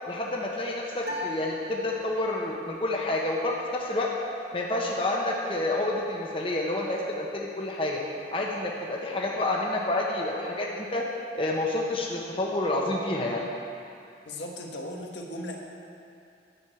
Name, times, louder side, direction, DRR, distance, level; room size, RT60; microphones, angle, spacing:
voice 1, 0.1-4.1 4.5-8.0 8.3-11.0 11.3-13.4, left 2 dB, 30° left, -2 dB, 1.1 m, -29 dB
sound 1, 1.0-2.5, left 1 dB, 70° right, 1.9 m, -38 dB
voice 2, 14.2-15.6, left 1 dB, 80° left, 0 dB, 1.3 m, -37 dB
11.0 x 6.4 x 7.8 m, 2.6 s
head